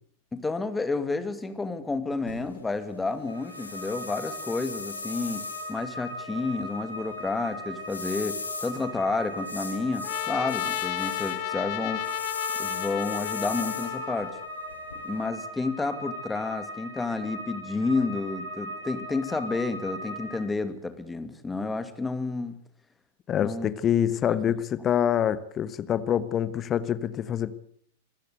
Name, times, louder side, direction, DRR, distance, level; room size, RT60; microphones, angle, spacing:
voice 1, 0.3-12.1 12.6-14.3 15.0-22.5 23.4-23.7 24.1-24.6, left 3 dB, 10° left, 2.3 m, -30 dB
sound 1, 2.3-15.3, left 3 dB, 80° left, 3.4 m, -40 dB
sound 2, 3.3-20.4, equal, 90° right, 7.5 m, -38 dB
Trumpet, 10.0-14.5, left 16 dB, 45° left, 1.3 m, -33 dB
voice 2, 23.3-27.5, left 9 dB, 25° left, 1.1 m, -26 dB
25.5 x 15.0 x 8.1 m
figure-of-eight pair, 95°, 0 cm